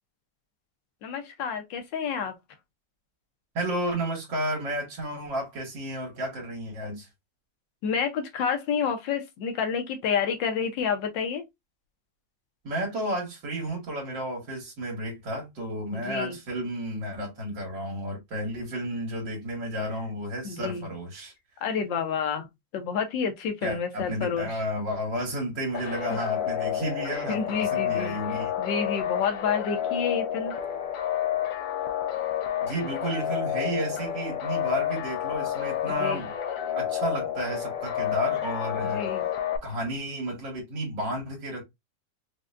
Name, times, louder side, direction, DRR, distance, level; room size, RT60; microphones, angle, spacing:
voice 1, 1.0-2.3 7.8-11.4 15.9-16.4 20.4-20.9 21.6-24.5 26.1-26.2 27.1-30.6 35.9-36.2 38.8-39.3, left 6 dB, 90° left, 1.5 m, -29 dB
voice 2, 3.5-7.1 12.6-21.3 23.6-28.5 32.6-36.3 36.8-39.1 39.6-41.6, right 1 dB, 85° right, 2.1 m, -32 dB
sound 1, 25.7-39.6, left 10 dB, 70° left, 0.8 m, -30 dB
5.0 x 2.2 x 2.5 m
omnidirectional pair, 1.9 m